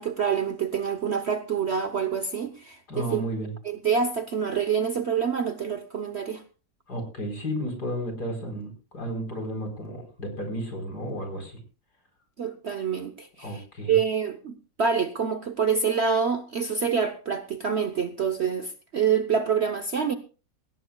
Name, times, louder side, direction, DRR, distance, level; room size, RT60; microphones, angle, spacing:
voice 1, 0.0-3.2 3.6-6.4 12.4-20.1, right 6 dB, 50° right, 9 dB, 0.9 m, -26 dB
voice 2, 2.9-3.5 6.9-11.6 13.4-14.0, equal, 65° left, 4 dB, 5.0 m, -33 dB
18.0 x 17.0 x 2.3 m, 0.35 s
omnidirectional pair, 1.9 m